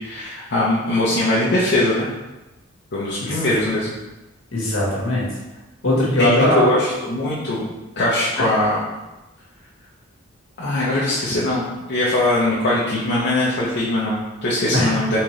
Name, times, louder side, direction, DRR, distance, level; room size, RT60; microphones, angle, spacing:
voice 1, 0.0-2.1 2.9-3.9 6.2-7.7 8.0-8.9 10.6-11.6 11.9-15.2, left 1 dB, 55° left, -8 dB, 0.8 m, -21 dB
voice 2, 4.5-5.3 5.8-6.6 8.4-8.5 14.7-15.1, left 1 dB, 75° left, -4 dB, 1.5 m, -20 dB
4.4 x 3.6 x 3.2 m, 1.0 s
head